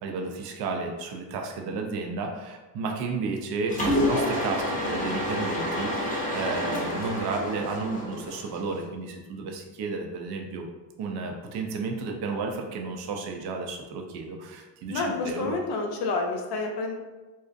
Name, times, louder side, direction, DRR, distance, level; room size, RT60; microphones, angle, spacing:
voice 1, 0.0-10.7 11.0-15.6, right 4 dB, 55° right, 3 dB, 0.5 m, -32 dB
Mechanisms, 3.7-8.8, left 1 dB, 15° left, 0.7 m, -29 dB
voice 2, 14.9-16.9, left 3 dB, 55° left, 2 dB, 0.6 m, -29 dB
2.6 x 2.1 x 2.4 m, 1.2 s
supercardioid pair, 80°, 47 cm